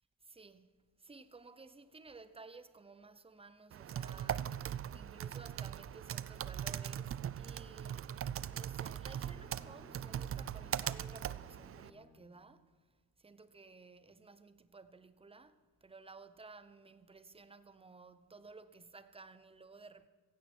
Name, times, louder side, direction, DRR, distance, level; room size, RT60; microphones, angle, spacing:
voice 1, 0.2-12.8 13.2-20.1, right 4 dB, 15° right, 0.8 m, -56 dB
Typing, 3.7-11.9, right 9 dB, 40° right, 0.4 m, -40 dB
Bowed string instrument, 8.6-12.4, left 3 dB, 15° left, 3.6 m, -61 dB
16.0 x 16.0 x 4.5 m
cardioid pair, 105°, 34 cm